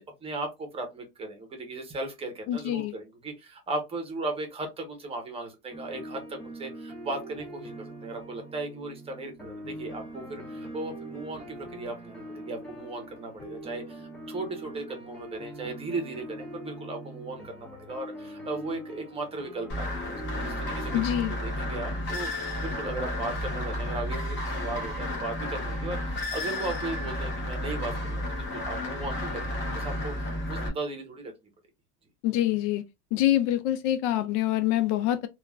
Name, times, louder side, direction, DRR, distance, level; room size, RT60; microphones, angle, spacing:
voice 1, 0.0-31.3, right 2 dB, 15° right, 0.7 m, -37 dB
voice 2, 2.5-2.9 20.9-21.3 32.2-32.8 33.1-35.3, left 13 dB, 70° left, 0.5 m, -25 dB
sound 1, 5.7-21.0, right 1 dB, 5° left, 0.3 m, -42 dB
sound 2, 19.7-30.7, left 1 dB, 30° left, 0.9 m, -32 dB
3.1 x 2.3 x 2.2 m
supercardioid pair, 150°, 36 cm